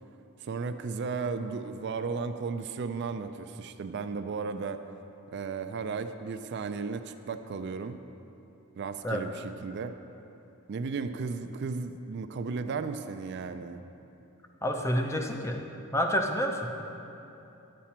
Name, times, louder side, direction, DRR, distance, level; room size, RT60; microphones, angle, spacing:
voice 1, 0.4-4.8 5.3-8.0 8.8-9.9 10.7-13.8, right 4 dB, 50° right, 9 dB, 0.3 m, -35 dB
voice 2, 14.6-15.6 15.9-16.7, equal, 15° left, 3 dB, 0.5 m, -28 dB
10.5 x 7.3 x 4.3 m, 2.9 s
head